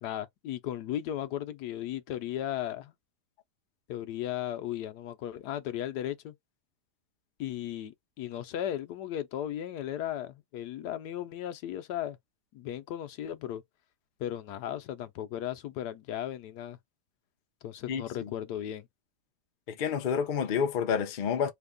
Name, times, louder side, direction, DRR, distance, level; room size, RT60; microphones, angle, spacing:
voice 1, 0.0-2.9 3.9-6.3 7.4-12.2 12.5-13.6 14.2-16.8 17.6-18.9, left 11 dB, 85° left, 1.2 m, -36 dB
voice 2, 17.9-18.3 19.7-21.5, left 7 dB, 65° left, 0.4 m, -29 dB
3.3 x 2.2 x 3.6 m
omnidirectional pair, 1.7 m